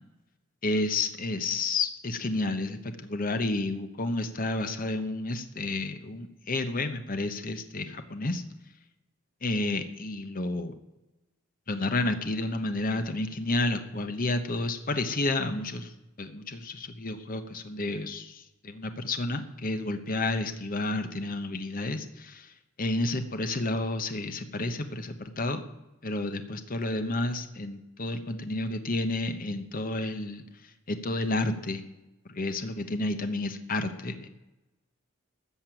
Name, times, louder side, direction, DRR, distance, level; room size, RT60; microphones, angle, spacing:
voice 1, 0.6-8.4 9.4-10.7 11.7-15.9 16.2-22.5 22.8-25.6 26.0-30.4 30.9-31.8 32.3-34.3, left 2 dB, 40° left, 8 dB, 1.0 m, -31 dB
14.0 x 6.7 x 9.0 m, 0.99 s
head